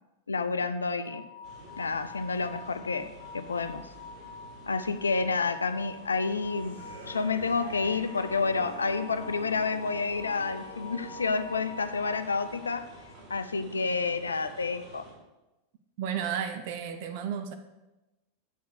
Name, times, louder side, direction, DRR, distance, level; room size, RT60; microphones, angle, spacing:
voice 1, 0.3-1.3 1.8-3.9 4.7-6.8 7.1-12.9 13.3-15.1, left 4 dB, 75° left, 11 dB, 0.4 m, -29 dB
sound 1, 1.0-13.3, left 4 dB, 10° left, 2.0 m, -46 dB
Urban sidewalk with siren, 1.4-15.1, right 2 dB, 30° right, 3.4 m, -51 dB
sound 2, 6.5-12.0, right 2 dB, 80° right, 1.8 m, -45 dB
voice 2, 16.0-17.5, right 8 dB, 50° right, 7 dB, 0.7 m, -33 dB
8.1 x 4.7 x 6.3 m, 1.0 s
figure-of-eight pair, 90°, 0 cm